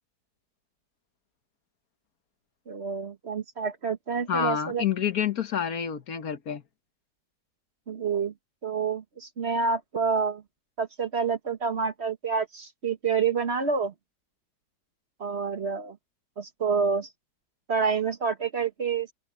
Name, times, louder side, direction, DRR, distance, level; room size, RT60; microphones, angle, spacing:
voice 1, 2.7-4.8 7.9-8.3 8.6-10.4 10.8-13.9 15.2-16.0 16.4-17.1 17.7-19.1, right 5 dB, 40° right, 1.5 m, -28 dB
voice 2, 4.3-6.6, left 8 dB, 65° left, 1.6 m, -28 dB
open air
omnidirectional pair, 1.7 m